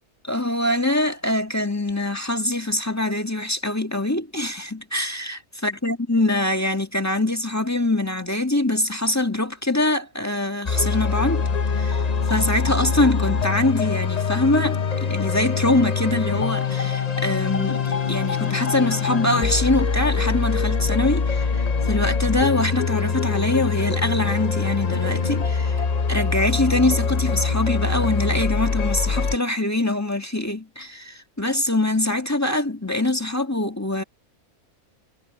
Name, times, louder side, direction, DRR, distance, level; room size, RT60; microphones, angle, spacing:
voice 1, 0.2-11.5 11.8-25.8 26.1-34.0, left 1 dB, 10° left, 1.7 m, -24 dB
sound 1, 10.7-29.4, left 5 dB, 35° left, 0.7 m, -23 dB
omnidirectional pair, 1.5 m